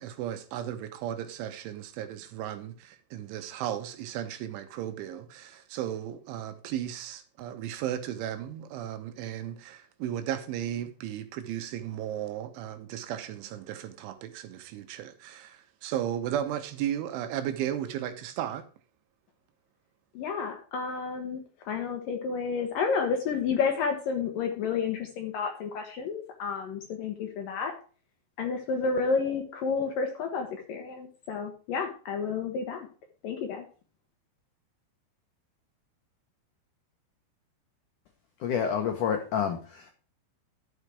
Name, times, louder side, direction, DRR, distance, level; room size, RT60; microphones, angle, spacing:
voice 1, 0.0-18.6, right 11 dB, 85° right, 3.5 m, -35 dB
voice 2, 20.1-21.4 21.7-27.7 28.4-32.9 33.2-33.7, left 5 dB, 70° left, 2.1 m, -30 dB
voice 3, 38.4-39.9, left 7 dB, 85° left, 1.8 m, -28 dB
12.0 x 5.7 x 4.7 m
omnidirectional pair, 5.3 m